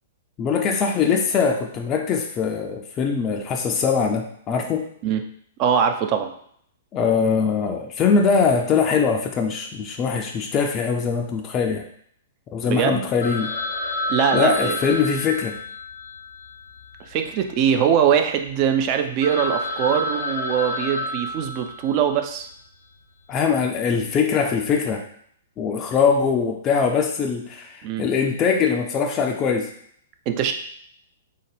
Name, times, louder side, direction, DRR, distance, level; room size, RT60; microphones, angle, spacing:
voice 1, 0.4-4.9 6.9-11.8 12.5-13.5 14.3-15.6 23.3-25.0 25.6-29.7, left 5 dB, 25° left, 2 dB, 0.4 m, -22 dB
voice 2, 5.6-6.3 12.7-13.1 14.1-14.7 17.1-22.5 27.8-28.0 30.3-30.5, right 8 dB, 35° right, 6 dB, 0.4 m, -22 dB
Telephone, 13.2-17.6 17.8-17.9 18.5-18.6 18.9-19.0 19.2-22.2, left 2 dB, 80° left, 0.8 m, -30 dB
3.8 x 2.2 x 3.3 m, 0.65 s
figure-of-eight pair, 110°, 0 cm